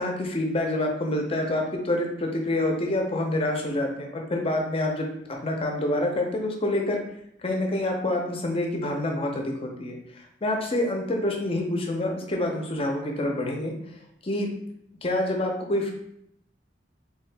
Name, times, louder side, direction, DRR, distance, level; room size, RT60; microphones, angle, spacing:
voice 1, 0.0-7.0 7.4-10.0 10.4-13.7 14.2-14.5 15.0-15.9, left 1 dB, 30° left, 2 dB, 0.6 m, -27 dB
3.3 x 2.8 x 3.3 m, 0.74 s
head